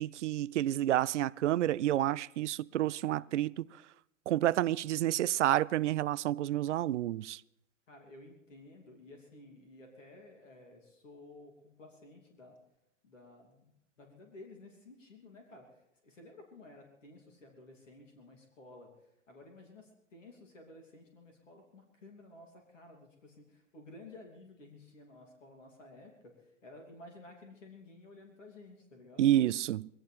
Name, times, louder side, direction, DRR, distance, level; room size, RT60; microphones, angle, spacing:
voice 1, 0.0-3.7 4.3-7.4 29.2-29.9, right 13 dB, 65° right, 0.5 m, -29 dB
voice 2, 7.9-12.6 13.0-13.7 14.0-29.4, left 2 dB, 75° left, 3.0 m, -54 dB
22.0 x 17.0 x 3.5 m
figure-of-eight pair, 95°, 38 cm